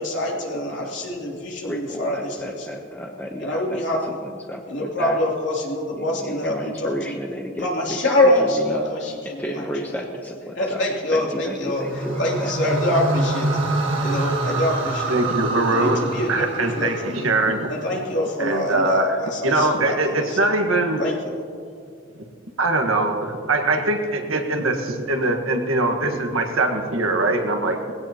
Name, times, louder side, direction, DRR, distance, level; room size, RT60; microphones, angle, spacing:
voice 1, 0.0-2.7 3.4-4.2 4.7-7.2 7.6-10.0 10.5-13.5 14.0-15.1 15.7-17.3 17.7-20.4 21.0-21.4, left 1 dB, 60° left, -3 dB, 2.9 m, -25 dB
voice 2, 1.6-3.8 4.2-5.2 5.9-8.0 8.4-8.8 9.4-10.8 11.1-12.7, equal, 10° left, 1 dB, 0.8 m, -32 dB
sound 1, 11.6-17.9, right 2 dB, 65° right, 1.8 m, -26 dB
voice 3, 15.1-17.9 18.4-19.2 19.4-21.0 22.6-27.8, right 2 dB, 85° right, 4 dB, 1.5 m, -22 dB
20.5 x 16.5 x 2.9 m, 2.3 s
head